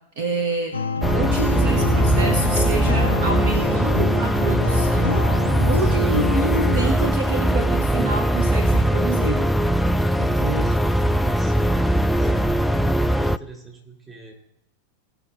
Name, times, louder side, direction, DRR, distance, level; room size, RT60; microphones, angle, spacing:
voice 1, 0.2-0.8 1.1-5.3 5.6-9.5 10.2-10.7, right 3 dB, 55° right, 5 dB, 1.3 m, -27 dB
sound 1, 0.7-6.9, left 4 dB, 70° left, 0.5 m, -28 dB
sound 2, 1.0-13.4, equal, ahead, 0.3 m, -20 dB
voice 2, 6.1-6.6 10.4-11.7 12.2-14.3, right 4 dB, 15° right, -2 dB, 4.1 m, -42 dB
18.0 x 6.1 x 4.1 m, 0.80 s
figure-of-eight pair, 90°, 0 cm